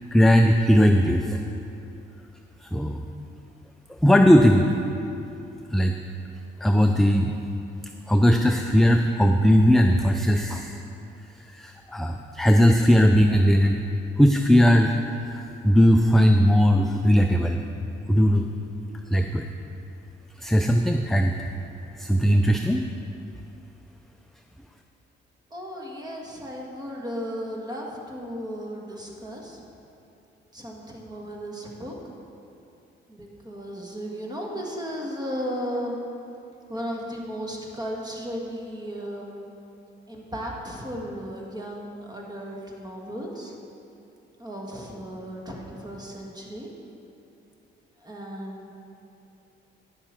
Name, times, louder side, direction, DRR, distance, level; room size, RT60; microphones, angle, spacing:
voice 1, 0.1-1.4 2.6-3.0 3.9-4.7 5.7-6.0 6.6-7.3 8.1-10.8 11.5-13.8 14.2-17.6 18.1-18.5 19.1-19.5 20.4-21.5 22.0-22.8, equal, ahead, 4 dB, 0.4 m, -19 dB
voice 2, 25.5-29.6 30.5-31.9 33.1-36.0 36.7-39.5 40.1-43.5 44.4-46.7 48.0-48.7, equal, 20° right, -1 dB, 1.5 m, -35 dB
9.9 x 6.7 x 4.4 m, 2.7 s
cardioid pair, 90°, 20 cm